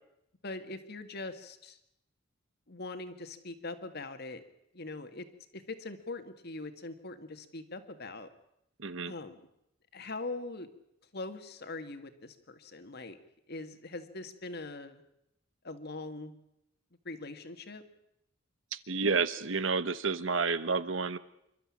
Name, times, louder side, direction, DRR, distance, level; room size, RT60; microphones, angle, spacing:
voice 1, 0.4-1.8 2.7-4.4 4.7-5.3 5.5-8.3 9.1-9.4 9.9-10.7 11.1-13.2 13.5-15.0 15.6-16.4 17.1-17.8, left 2 dB, 55° left, 9 dB, 1.9 m, -42 dB
voice 2, 8.8-9.1 18.7-21.2, right 4 dB, 75° right, 14 dB, 1.1 m, -30 dB
27.5 x 12.5 x 8.7 m, 0.80 s
head